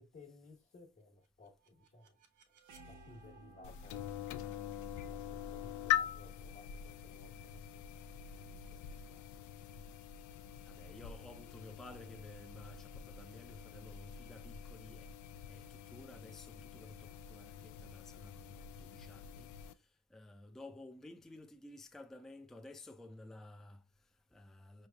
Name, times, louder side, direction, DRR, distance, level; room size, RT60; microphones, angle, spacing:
voice 1, 0.0-2.2 2.5-9.3, left 3 dB, 40° left, 1.3 m, -60 dB
sound 1, 1.2-7.1, right 2 dB, 80° right, 1.0 m, -61 dB
sound 2, 3.6-19.7, left 10 dB, 70° left, 0.5 m, -43 dB
voice 2, 10.6-15.1 15.5-24.9, left 1 dB, ahead, 0.4 m, -54 dB
5.4 x 3.1 x 2.3 m
cardioid pair, 90°, 30 cm